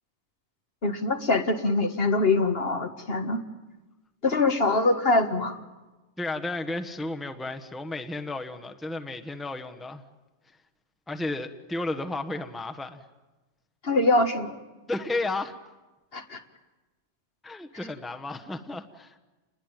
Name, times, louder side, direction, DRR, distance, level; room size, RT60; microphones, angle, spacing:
voice 1, 0.8-3.4 4.2-5.6 13.8-14.6 16.1-16.4, left 2 dB, 60° left, 6 dB, 2.0 m, -24 dB
voice 2, 6.2-10.0 11.1-13.0 14.9-15.5 17.4-19.2, left 2 dB, ahead, 6 dB, 1.2 m, -33 dB
30.0 x 21.0 x 9.2 m, 1.1 s
omnidirectional pair, 1.2 m